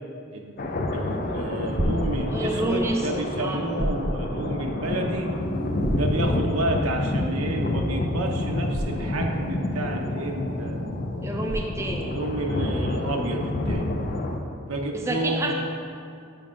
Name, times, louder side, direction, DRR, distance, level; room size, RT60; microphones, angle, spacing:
voice 1, 0.3-0.7 0.9-5.3 5.9-10.9 12.0-14.0 14.7-15.5, right 1 dB, 90° right, 2 dB, 0.8 m, -30 dB
sound 1, 0.6-14.4, left 1 dB, 40° left, 0.5 m, -28 dB
sound 2, 0.9-14.3, right 1 dB, 55° right, 0.7 m, -34 dB
voice 2, 2.3-3.7 11.2-12.1 14.9-15.5, right 2 dB, 15° right, 2 dB, 0.4 m, -29 dB
8.9 x 4.9 x 3.7 m, 2.5 s
head